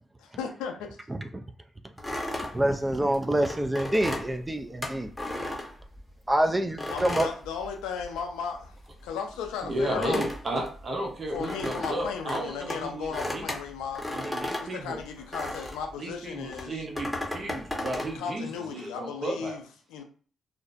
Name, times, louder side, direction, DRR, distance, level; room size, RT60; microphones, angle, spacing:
voice 1, 0.2-0.9 6.9-8.7 9.0-10.2 11.3-14.1 14.6-16.7 18.1-19.6 19.9-20.0, left 6 dB, 90° left, 0.4 m, -35 dB
voice 2, 1.1-1.4 2.5-5.1 6.3-7.3, right 1 dB, 20° right, 0.3 m, -26 dB
sound 1, 2.0-6.3 6.8-8.3 8.5-15.9 16.5-18.2, left 1 dB, 5° left, 0.9 m, -35 dB
voice 3, 9.6-13.5 14.1-15.0 16.0-19.6, right 1 dB, 45° right, 0.7 m, -33 dB
2.5 x 2.1 x 2.4 m
supercardioid pair, 50°, 0 cm